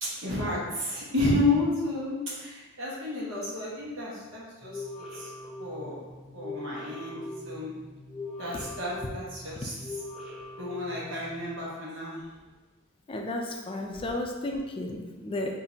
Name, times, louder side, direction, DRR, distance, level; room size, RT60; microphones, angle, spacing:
voice 1, 0.0-4.8 5.1-5.3 5.6-6.0 6.3-7.7 8.4-9.7 10.6-12.2, left 2 dB, 80° right, -5 dB, 1.3 m, -31 dB
sound 1, 4.6-11.5, left 2 dB, 5° right, 0.7 m, -41 dB
voice 2, 13.1-15.6, left 1 dB, 25° left, 1 dB, 0.3 m, -33 dB
5.0 x 2.7 x 2.8 m, 1.2 s
head